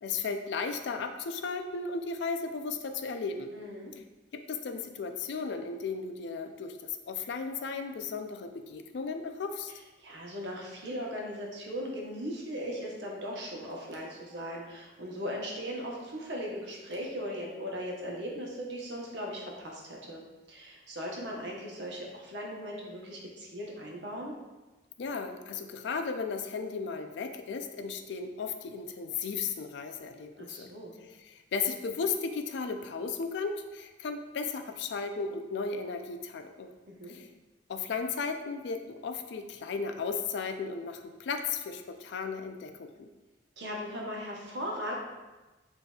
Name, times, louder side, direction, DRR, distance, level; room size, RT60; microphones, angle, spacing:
voice 1, 0.0-3.5 4.3-9.7 25.0-30.7 31.3-36.7 37.0-37.3 37.7-43.1, left 5 dB, 70° left, 6 dB, 0.4 m, -35 dB
voice 2, 3.5-3.9 10.0-24.4 30.4-30.9 36.9-37.1 43.6-44.9, equal, 75° right, -2 dB, 0.9 m, -38 dB
6.3 x 2.6 x 2.3 m, 1.2 s
head